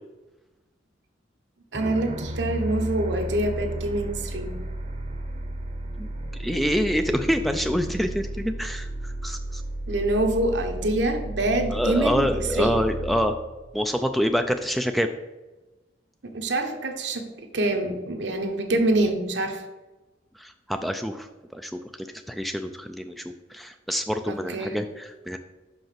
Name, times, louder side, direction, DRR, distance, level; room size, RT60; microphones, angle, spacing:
sound 1, 1.7-14.5, right 1 dB, 35° right, 0.8 m, -33 dB
voice 1, 1.7-4.6 9.9-12.8 16.2-17.3 17.5-19.6 24.3-24.8, right 2 dB, 70° right, 4 dB, 1.0 m, -25 dB
voice 2, 6.4-9.6 11.7-13.4 13.7-15.1 20.4-23.2 23.5-25.4, equal, ahead, 7 dB, 0.3 m, -26 dB
5.7 x 5.4 x 5.8 m, 1.1 s
head